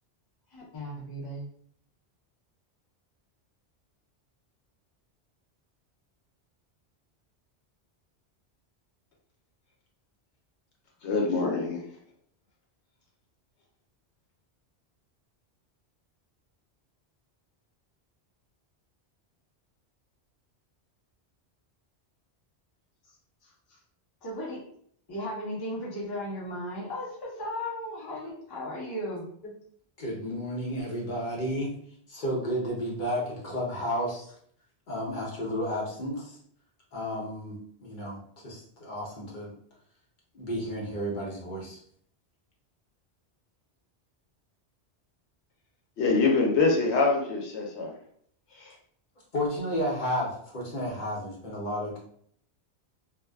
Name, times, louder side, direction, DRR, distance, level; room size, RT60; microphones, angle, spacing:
voice 1, 0.5-1.5 24.2-24.6 25.1-29.3, equal, 25° left, -4 dB, 0.6 m, -36 dB
voice 2, 11.0-11.8 46.0-47.9 48.5-48.7, left 3 dB, 80° left, -1 dB, 0.9 m, -25 dB
voice 3, 30.0-31.7 32.1-34.3 34.9-36.4 36.9-38.2 38.4-39.5 40.3-41.8 49.3-52.0, equal, 50° left, -4 dB, 0.9 m, -32 dB
2.5 x 2.2 x 2.2 m, 0.63 s
omnidirectional pair, 1.1 m